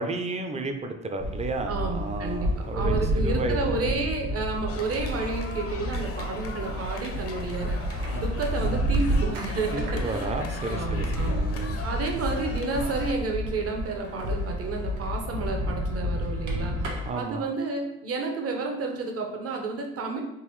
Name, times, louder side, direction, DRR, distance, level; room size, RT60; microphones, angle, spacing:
voice 1, 0.0-4.0 8.0-8.2 9.7-11.8 17.1-17.4, right 2 dB, 20° right, 5 dB, 0.4 m, -32 dB
sound 1, 1.2-17.1, equal, 80° right, 1.0 m, -30 dB
voice 2, 1.7-7.8 8.1-11.5 11.8-16.8 17.1-20.2, right 3 dB, 50° right, 2 dB, 0.8 m, -31 dB
sound 2, 4.7-13.1, left 4 dB, 50° left, 0.6 m, -40 dB
3.8 x 2.6 x 3.1 m, 0.91 s
cardioid pair, 90°, 30 cm